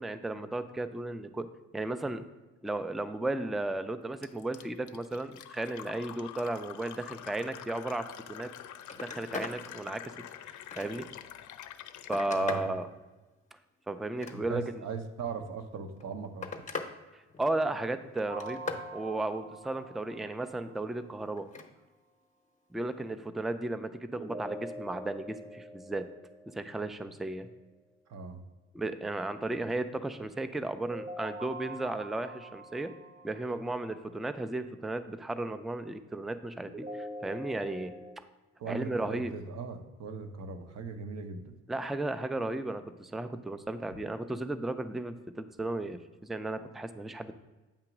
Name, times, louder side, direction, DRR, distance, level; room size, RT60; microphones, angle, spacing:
voice 1, 0.0-1.5 1.7-2.2 2.6-8.5 9.0-10.0 10.5-11.1 12.1-12.9 13.9-14.6 17.1-18.6 18.9-21.5 22.7-26.1 26.5-27.5 28.7-32.9 33.2-38.2 38.7-39.3 41.7-47.3, right 2 dB, ahead, 10 dB, 0.3 m, -34 dB
Fill (with liquid), 4.2-12.3, left 11 dB, 75° left, 0.5 m, -46 dB
Telephone, 8.4-8.5 8.8-9.6 10.1-11.2 11.7-12.8 14.0-14.8 15.8-16.9 17.3-17.8 18.2-18.9 21.4-21.7 23.1-23.2, left 4 dB, 25° left, 0.7 m, -41 dB
voice 2, 12.4-12.7 14.3-16.5 28.1-28.4 38.6-41.6, right 5 dB, 60° right, 7 dB, 0.8 m, -39 dB
sound 1, 18.3-21.2 24.2-27.2 30.9-34.1 36.7-38.2, right 1 dB, 25° right, 0.9 m, -44 dB
8.7 x 2.9 x 5.8 m, 1.2 s
cardioid pair, 90°, 30 cm